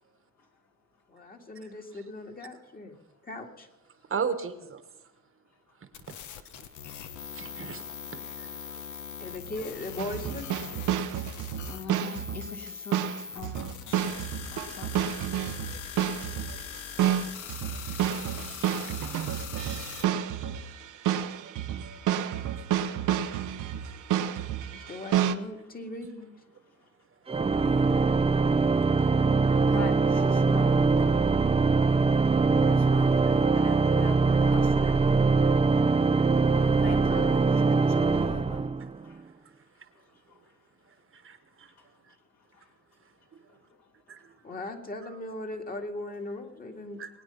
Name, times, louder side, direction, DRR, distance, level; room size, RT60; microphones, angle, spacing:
voice 1, 1.1-3.0 3.2-3.7 9.2-10.5 24.5-26.3 37.0-37.4 44.4-47.0, left 2 dB, 30° left, 2.1 m, -39 dB
voice 2, 4.1-4.8 7.3-7.8 8.4-8.5 13.6-13.7 16.5-16.6 17.9-18.0 18.3-18.7 19.6-21.0 21.4-21.5 21.8-22.0 41.2-41.4 44.1-44.2 47.0-47.1, right 6 dB, 45° right, 1.3 m, -36 dB
sound 1, 5.9-20.0, left 8 dB, 75° left, 1.1 m, -41 dB
sound 2, 10.0-25.3, right 10 dB, 85° right, 0.9 m, -30 dB
voice 3, 11.7-13.0 13.3-14.1 14.7-15.1 29.7-31.2 32.4-35.0 36.4-37.4 37.7-38.6, left 4 dB, 60° left, 2.9 m, -42 dB
Organ, 27.3-39.1, right 4 dB, 20° right, 0.6 m, -23 dB
20.5 x 9.2 x 5.7 m
cardioid pair, 90°, 30 cm